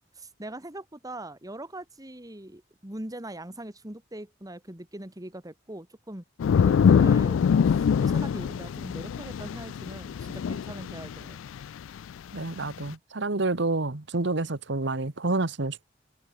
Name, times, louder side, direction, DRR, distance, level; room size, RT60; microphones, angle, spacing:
voice 1, 0.1-6.2 6.6-7.4 7.7-11.4, right 1 dB, 20° right, 2.3 m, -41 dB
sound 1, 6.4-12.1 12.6-12.9, left 7 dB, 80° left, 0.3 m, -24 dB
voice 2, 12.3-15.9, right 2 dB, 65° right, 1.4 m, -28 dB
head